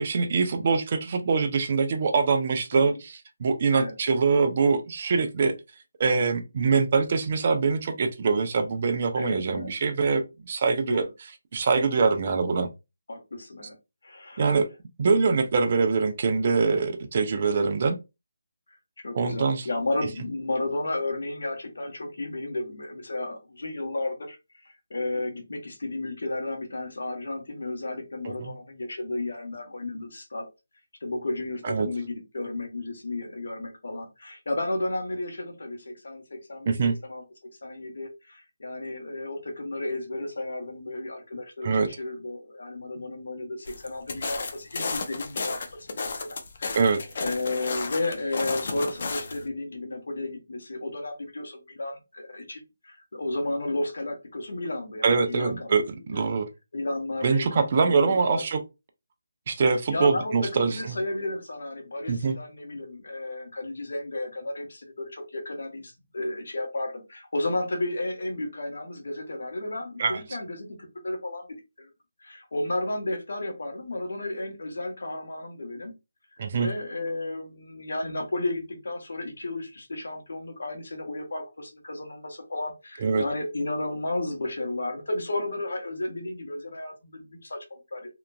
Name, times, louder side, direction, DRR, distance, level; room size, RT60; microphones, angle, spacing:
voice 1, 0.0-5.5 6.0-11.0 11.5-12.7 14.4-14.7 15.0-18.0 19.1-19.7 28.4-28.5 31.6-31.9 36.7-36.9 41.6-41.9 46.7-47.0 55.0-56.5 57.2-58.6 59.5-60.8 62.1-62.4 70.0-70.2 76.4-76.7 83.0-83.2, right 4 dB, 35° right, 0.5 m, -24 dB
voice 2, 9.1-9.7 10.9-11.1 13.1-13.8 14.0-14.5 19.0-24.4 24.6-30.4 31.0-37.2 37.6-45.6 45.9-46.8 47.2-55.8 56.1-56.2 56.7-58.4 59.9-71.5 71.8-71.9 72.2-75.9 76.5-88.1, left 2 dB, 70° left, 1.1 m, -33 dB
sound 1, 43.7-49.5, left 3 dB, 50° left, 0.5 m, -33 dB
2.8 x 2.4 x 2.3 m
figure-of-eight pair, 165°, 0 cm